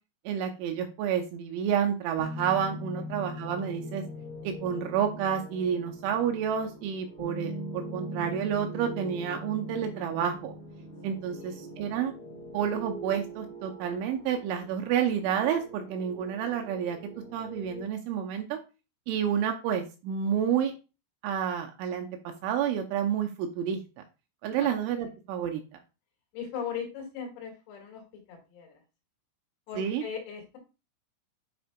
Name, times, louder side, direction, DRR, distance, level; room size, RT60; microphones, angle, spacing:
voice 1, 0.3-4.0 4.4-10.5 11.0-12.1 12.5-17.0 17.3-18.6 19.1-20.7 21.2-22.1 22.4-23.8 24.4-25.6 29.8-30.1, right 8 dB, 85° right, 4 dB, 2.8 m, -29 dB
sound 1, 2.2-17.8, equal, 50° left, 1.6 m, -41 dB
voice 2, 11.3-11.6 24.5-24.7 26.3-28.8 29.7-30.6, left 7 dB, 80° left, 0 dB, 4.5 m, -39 dB
10.5 x 4.3 x 2.2 m, 0.31 s
omnidirectional pair, 5.9 m